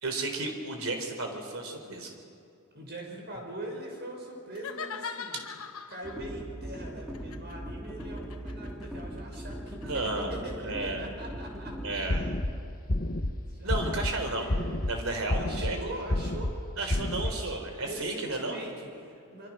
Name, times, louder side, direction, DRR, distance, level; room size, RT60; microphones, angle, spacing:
voice 1, 0.0-2.1 9.8-10.4 10.6-11.1 11.8-12.3 13.6-14.5 14.9-15.8 16.8-18.6, right 2 dB, 70° right, 4 dB, 3.9 m, -33 dB
voice 2, 2.7-5.4 5.9-12.3 13.5-14.1 14.3-15.0 15.3-17.6 17.8-19.5, right 1 dB, 50° right, 0 dB, 6.3 m, -42 dB
sound 1, 4.5-6.3 7.1-10.2, left 6 dB, 80° left, 1.2 m, -41 dB
sound 2, 6.0-12.4, equal, ahead, 2.9 m, -40 dB
sound 3, 12.1-12.5 12.9-13.3 13.7-14.1 14.5-14.9 15.3-15.7 16.1-16.5 16.9-17.3, left 1 dB, 45° left, 1.1 m, -29 dB
25.0 x 24.5 x 6.2 m, 2.5 s
head